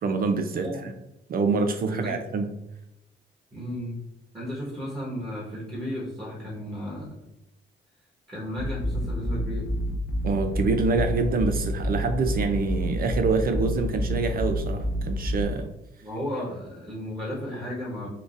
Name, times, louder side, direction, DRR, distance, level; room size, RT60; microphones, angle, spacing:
voice 1, 0.0-0.9 1.3-2.5 10.2-15.7, right 3 dB, 50° right, 6 dB, 0.4 m, -26 dB
voice 2, 0.5-0.8 1.9-2.1 3.5-4.0 4.3-7.1 8.3-9.7 16.0-18.1, equal, 20° right, -6 dB, 1.4 m, -34 dB
sound 1, 8.6-15.4, equal, 60° left, 0.5 m, -29 dB
3.7 x 2.5 x 2.6 m, 0.89 s
cardioid pair, 90°, 20 cm